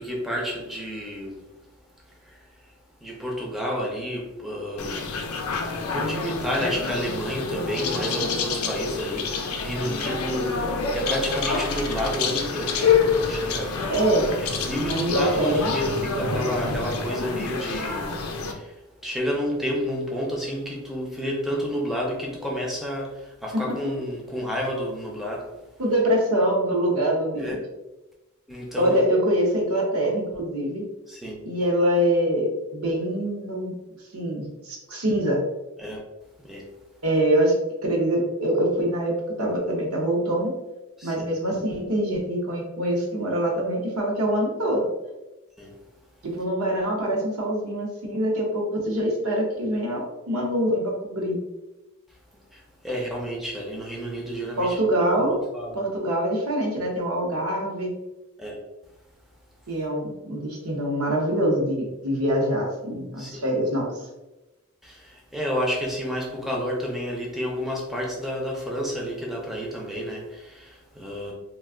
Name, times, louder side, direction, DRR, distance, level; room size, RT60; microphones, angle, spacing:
voice 1, 0.0-1.4 2.0-13.9 14.4-25.6 27.4-27.5 28.5-29.0 31.1-31.4 35.8-36.0 36.4-36.7 41.0-41.3 45.6-45.8 52.5-54.8 55.2-55.8 58.4-58.6 63.2-63.5 64.8-71.3, equal, ahead, -2 dB, 0.4 m, -30 dB
sound 1, 4.8-18.5, left 5 dB, 70° left, 0.4 m, -27 dB
voice 2, 13.9-14.3 14.9-15.7 23.5-23.6 25.8-27.6 28.8-30.9 31.4-32.5 32.7-33.7 34.1-35.4 37.0-37.5 37.8-40.5 41.0-44.8 46.2-51.4 54.6-55.4 55.7-57.9 59.7-64.1, right 1 dB, 75° right, -1 dB, 0.8 m, -24 dB
2.4 x 2.2 x 3.5 m, 1.0 s
head